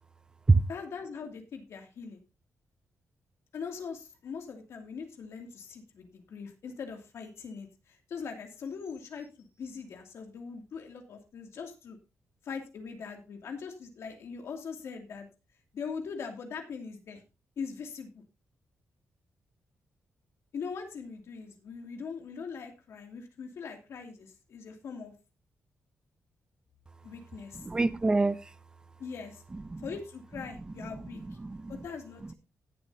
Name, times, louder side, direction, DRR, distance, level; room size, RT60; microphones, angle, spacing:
voice 1, 0.7-2.2 3.5-12.0 12.4-15.3 15.7-17.2 17.6-18.2 20.5-25.1 27.0-27.7 29.0-29.4 29.8-31.2 31.7-32.3, left 5 dB, 65° left, 2.5 m, -41 dB
voice 2, 27.6-28.4 29.5-29.8 31.4-31.7, right 3 dB, 15° right, 0.6 m, -25 dB
18.0 x 7.5 x 2.7 m
wide cardioid pair, 180°, 5 cm